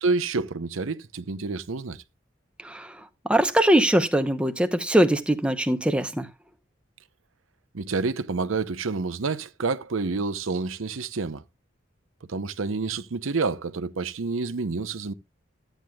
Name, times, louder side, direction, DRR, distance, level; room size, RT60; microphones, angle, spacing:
voice 1, 0.0-2.0 7.7-11.4 12.3-15.1, right 4 dB, 85° right, 0.7 m, -28 dB
voice 2, 2.6-2.9 3.3-6.3, right 1 dB, 5° right, 0.7 m, -22 dB
14.0 x 9.1 x 2.3 m
head